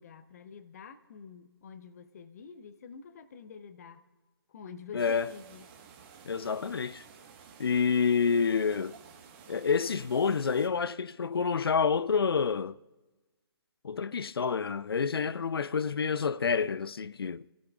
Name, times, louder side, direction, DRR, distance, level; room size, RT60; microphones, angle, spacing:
voice 1, 0.0-4.1 4.5-5.7, left 6 dB, 40° left, 1.0 m, -47 dB
voice 2, 4.9-5.3 6.3-7.0 7.6-9.0 9.5-12.8 13.8-17.5, left 5 dB, 65° left, 0.4 m, -28 dB
sound 1, 5.0-10.7, right 6 dB, 25° right, 1.6 m, -53 dB
29.5 x 16.5 x 2.5 m
figure-of-eight pair, 145°, 14 cm